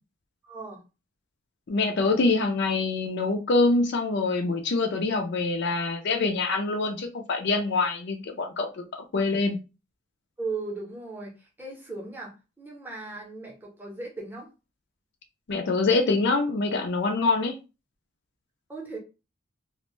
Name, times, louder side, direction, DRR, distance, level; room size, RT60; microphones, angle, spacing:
voice 1, 0.4-0.8 10.4-14.5 18.7-19.0, right 3 dB, 10° right, 0.7 m, -37 dB
voice 2, 1.7-8.8 9.1-9.6 15.5-17.5, left 3 dB, 55° left, 0.4 m, -25 dB
2.4 x 2.1 x 3.1 m
head